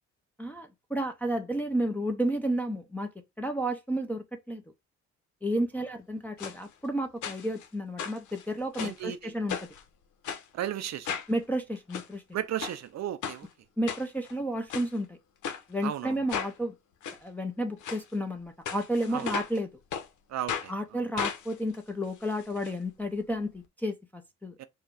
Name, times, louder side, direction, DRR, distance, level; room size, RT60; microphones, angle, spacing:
voice 1, 0.4-3.1 3.4-4.6 5.4-9.6 11.3-12.2 13.8-15.2 15.7-16.7 17.2-19.7 20.7-24.6, equal, 5° left, 0.7 m, -31 dB
sound 1, 6.4-6.6 7.2-7.7 8.0-9.0 9.5-9.8 10.2-10.4 11.0-11.3 11.8-12.1 12.6-12.8 13.2-13.4 13.9-14.3 14.7-14.9 15.4-15.6 16.3-16.5 17.0-17.2 17.8-18.0 18.7-19.6 19.9-20.1 20.5-20.7 21.2-22.7 23.0-23.1 23.3-23.4, left 7 dB, 75° left, 0.9 m, -35 dB
voice 2, 8.8-9.3 10.5-11.2 12.3-13.5 15.8-16.2 19.1-19.3 20.3-20.7 24.6-24.7, right 11 dB, 60° right, 0.6 m, -34 dB
4.7 x 2.3 x 4.7 m
cardioid pair, 90°, 30 cm